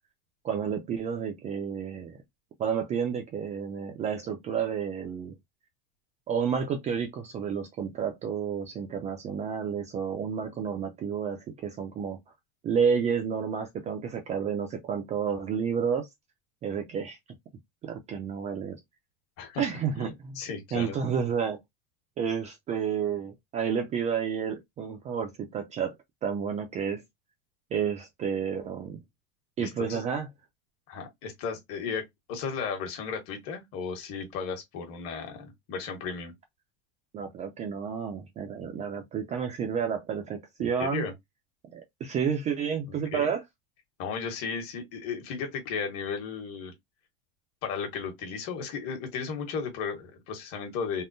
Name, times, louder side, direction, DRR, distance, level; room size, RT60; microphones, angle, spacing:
voice 1, 0.4-2.2 2.6-5.3 6.3-12.2 12.6-16.1 16.6-17.2 17.8-18.8 19.6-20.4 20.7-21.6 22.2-26.0 26.2-27.0 27.7-29.0 29.6-30.3 37.1-41.1 41.7-43.4, right 7 dB, 20° right, 0.4 m, -30 dB
voice 2, 20.3-21.0 29.6-30.0 30.9-36.3 40.6-41.1 42.9-43.3 44.0-46.7 47.6-51.0, left 5 dB, 45° left, 1.2 m, -35 dB
3.6 x 2.0 x 2.6 m
supercardioid pair, 145°, 32 cm